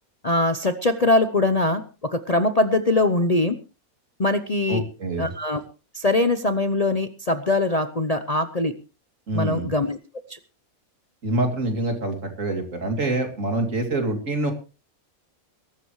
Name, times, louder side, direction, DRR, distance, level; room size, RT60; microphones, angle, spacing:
voice 1, 0.2-3.6 4.2-4.8 5.2-5.6 5.9-8.7 9.3-10.0 10.3-10.4, left 2 dB, 35° left, 9 dB, 0.8 m, -22 dB
voice 2, 4.7-5.3 9.3-9.7 11.2-14.5, right 2 dB, 60° right, 4 dB, 3.2 m, -26 dB
22.0 x 12.5 x 3.1 m, 0.33 s
omnidirectional pair, 1.5 m